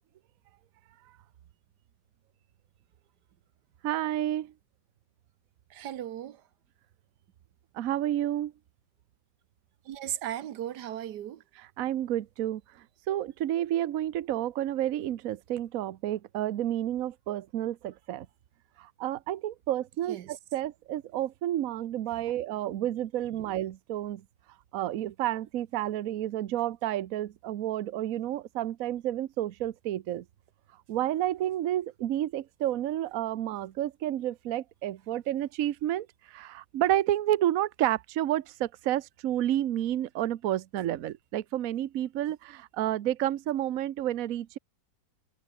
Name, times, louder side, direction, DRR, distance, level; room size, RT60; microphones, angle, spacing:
voice 1, 3.8-4.5 7.7-8.5 11.6-12.6 13.1-18.3 18.8-24.2 24.7-30.2 30.9-44.6, right 12 dB, 65° right, 1.1 m, -30 dB
voice 2, 5.7-6.4 9.8-11.4 20.1-20.3, right 11 dB, 90° right, 1.5 m, -36 dB
omnidirectional pair, 1.7 m